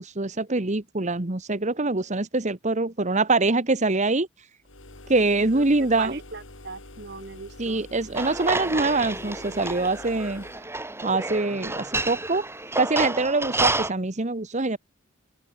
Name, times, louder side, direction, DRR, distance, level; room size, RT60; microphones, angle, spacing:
voice 1, 0.0-4.5 5.1-6.2 7.6-10.4 11.0-12.5 12.8-14.8, right 3 dB, 40° right, 1.3 m, -24 dB
sound 1, 4.6-10.7, left 2 dB, 90° left, 3.9 m, -46 dB
voice 2, 6.0-7.8, right 3 dB, 60° right, 2.7 m, -38 dB
sound 2, 8.1-13.9, right 2 dB, 15° right, 4.1 m, -30 dB
open air
head